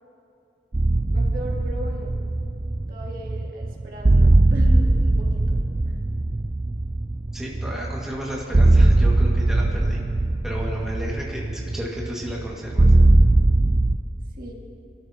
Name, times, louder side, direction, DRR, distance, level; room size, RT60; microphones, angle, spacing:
sound 1, 0.7-14.0, right 2 dB, 25° right, 0.4 m, -20 dB
voice 1, 1.1-2.2 2.9-5.6 14.3-14.5, equal, 50° right, -2 dB, 1.9 m, -37 dB
voice 2, 7.3-10.0 10.4-12.9, equal, 5° right, -4 dB, 1.8 m, -33 dB
24.0 x 13.0 x 2.8 m, 2.5 s
head